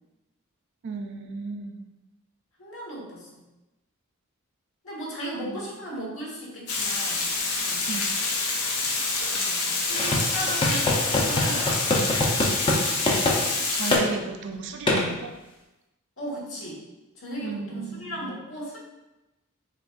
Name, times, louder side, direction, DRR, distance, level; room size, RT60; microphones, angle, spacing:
voice 1, 0.8-1.8 5.5-5.8 7.9-8.1 13.7-15.3 17.4-18.4, right 5 dB, 55° right, 5 dB, 0.4 m, -34 dB
voice 2, 2.6-3.4 4.8-7.8 9.3-12.3 16.2-16.8 17.1-18.8, equal, 65° left, -5 dB, 1.3 m, -36 dB
Water, 6.7-14.0, left 3 dB, 80° left, 0.7 m, -27 dB
sound 1, 9.9-12.8 13.1-13.4 13.9-14.0 14.9-15.0, left 2 dB, 25° left, 0.6 m, -24 dB
6.0 x 2.4 x 2.4 m, 1.0 s
head